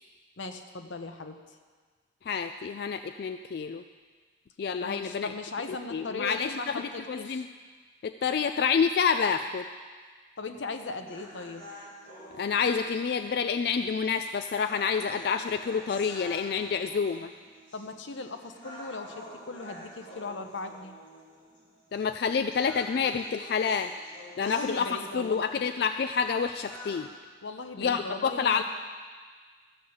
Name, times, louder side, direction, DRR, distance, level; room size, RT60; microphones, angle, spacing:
voice 1, 0.4-1.6 4.8-7.5 10.4-11.7 17.7-20.9 24.4-25.5 27.4-28.6, left 3 dB, 85° left, 7 dB, 0.9 m, -38 dB
voice 2, 2.2-3.8 4.6-5.3 5.9-7.4 8.0-9.7 12.3-17.3 21.9-23.9 24.4-24.9 25.1-27.1 27.8-28.6, left 6 dB, 55° left, 8 dB, 0.3 m, -28 dB
sound 1, 11.1-27.1, equal, 25° left, 2.7 m, -48 dB
13.5 x 5.5 x 7.8 m, 1.5 s
head